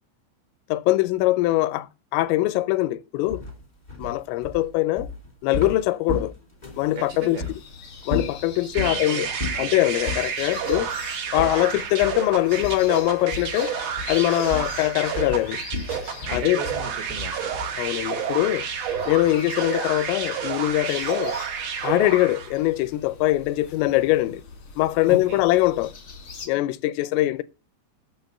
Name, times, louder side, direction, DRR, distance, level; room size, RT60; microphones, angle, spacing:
voice 1, 0.7-3.4 4.0-5.1 5.4-6.3 6.8-7.4 8.1-9.3 9.6-10.9 11.3-13.7 14.1-15.6 16.3-16.6 17.8-18.7 19.1-21.4 21.8-24.4 24.8-25.9 26.5-27.4, left 16 dB, 85° left, 3.2 m, -22 dB
sound 1, 3.3-6.9 7.4-7.6 8.0-9.0 9.4-9.7 10.0-10.3 10.7-10.9 11.3-12.3 12.6-13.0 13.3-13.6 13.9-17.9, left 3 dB, 40° left, 0.6 m, -33 dB
sound 2, 6.7-26.5, left 4 dB, 65° left, 1.2 m, -42 dB
voice 2, 7.0-7.5 8.7-9.8 16.2-17.6 25.1-25.5, right 5 dB, 75° right, 2.3 m, -37 dB
sound 3, 8.7-22.6, right 7 dB, 90° right, 1.4 m, -30 dB
9.1 x 6.4 x 7.7 m
omnidirectional pair, 5.9 m